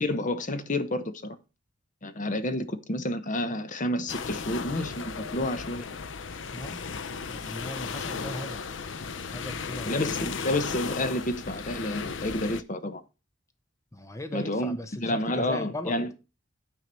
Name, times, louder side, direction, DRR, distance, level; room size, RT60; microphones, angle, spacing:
voice 1, 0.0-1.4 2.0-5.9 9.9-13.0 14.3-16.1, left 1 dB, 40° left, 1.0 m, -30 dB
sound 1, 4.1-12.6, left 5 dB, 70° left, 0.7 m, -35 dB
voice 2, 7.3-8.7 9.3-10.3 13.9-16.0, left 1 dB, 15° left, 1.0 m, -38 dB
9.4 x 4.7 x 6.8 m
head